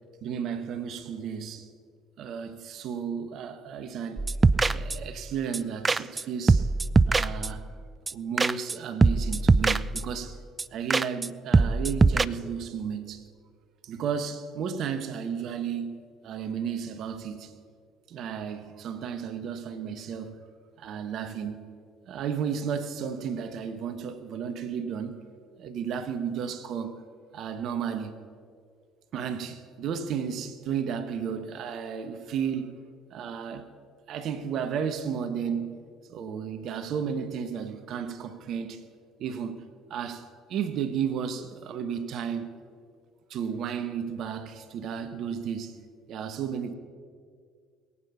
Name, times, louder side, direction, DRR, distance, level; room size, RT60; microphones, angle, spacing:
voice 1, 0.2-1.7 2.2-4.3 4.7-6.7 7.1-7.6 8.1-10.4 10.7-13.2 13.8-17.5 18.1-20.4 20.8-21.7 22.1-25.2 25.6-27.0 27.3-28.2 29.1-32.7 33.1-33.7 34.1-35.8 36.1-38.8 39.2-39.6 39.9-42.5 43.3-45.8 46.1-46.7, right 7 dB, 55° right, 1.2 m, -33 dB
sound 1, 4.2-5.2 5.5-5.6 5.9-6.2 6.5-7.7 8.1-8.8 9.0-10.2 10.6-10.7 10.9-11.3 11.5-12.3, right 3 dB, 25° right, 0.4 m, -22 dB
22.0 x 8.8 x 5.7 m
hypercardioid pair, 60°, 0 cm